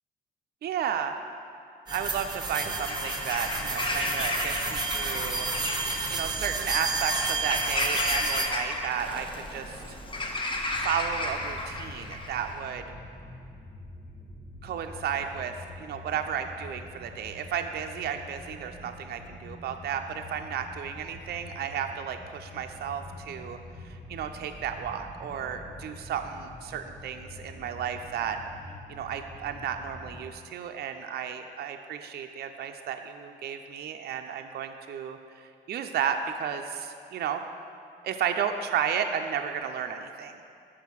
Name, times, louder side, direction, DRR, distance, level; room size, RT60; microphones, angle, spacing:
voice 1, 0.6-1.1 1.9-5.5 6.1-10.0 10.8-12.8 14.6-15.5 15.8-23.6 23.8-28.4 28.9-37.4 38.0-40.4, right 8 dB, 55° right, 6 dB, 0.4 m, -33 dB
sound 1, 1.9-8.5, right 3 dB, 20° right, 0.9 m, -31 dB
Bird vocalization bird call bird song / Crow, 2.7-12.6, left 2 dB, 25° left, 0.7 m, -33 dB
sound 2, 10.7-30.3, left 1 dB, ahead, 1.1 m, -46 dB
5.5 x 4.9 x 6.0 m, 2.4 s
cardioid pair, 90°, 20 cm